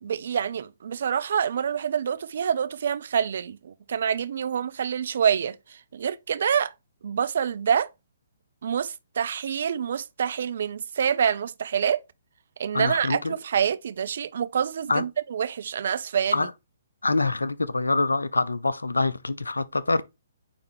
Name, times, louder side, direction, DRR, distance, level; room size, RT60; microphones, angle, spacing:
voice 1, 0.0-5.6 5.9-6.7 7.0-7.9 8.6-12.0 12.6-16.5, right 8 dB, 50° right, 0.5 m, -26 dB
voice 2, 12.7-13.3 14.9-15.0 16.3-16.5 17.0-20.0, left 3 dB, 75° left, 0.6 m, -25 dB
9.0 x 3.5 x 3.1 m
figure-of-eight pair, 130°, 0 cm